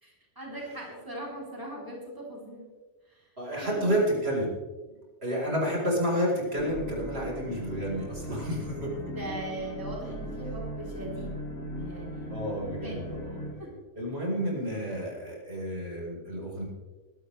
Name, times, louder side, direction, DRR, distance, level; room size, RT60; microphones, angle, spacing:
voice 1, 0.0-2.7 3.0-3.3 3.6-4.2 9.1-11.4 11.8-12.4 12.8-13.1 13.6-13.7, right 1 dB, 15° right, -4 dB, 3.7 m, -40 dB
voice 2, 3.4-4.5 4.9-5.0 5.2-8.9 12.3-13.6 14.0-16.6, equal, 60° right, -4 dB, 4.9 m, -30 dB
sound 1, 6.6-13.5, equal, 90° left, 2.4 m, -38 dB
23.0 x 12.5 x 3.4 m, 1.3 s
omnidirectional pair, 1.2 m